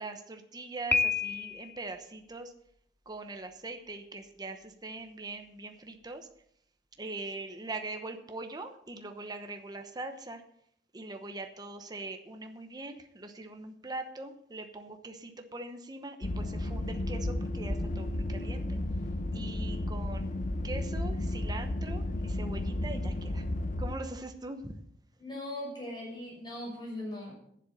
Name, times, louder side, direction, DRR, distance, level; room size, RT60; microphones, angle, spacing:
voice 1, 0.0-2.5 3.1-6.3 7.0-10.4 10.9-18.8 19.3-20.3 20.6-23.4 23.8-24.8, right 2 dB, 25° right, 6 dB, 0.9 m, -42 dB
Piano, 0.9-1.9, left 6 dB, 10° left, 0.6 m, -29 dB
sound 1, 16.2-24.0, left 1 dB, 45° left, 0.8 m, -33 dB
voice 2, 25.2-27.3, left 1 dB, 25° left, -3 dB, 5.9 m, -39 dB
11.0 x 7.7 x 6.6 m, 0.70 s
head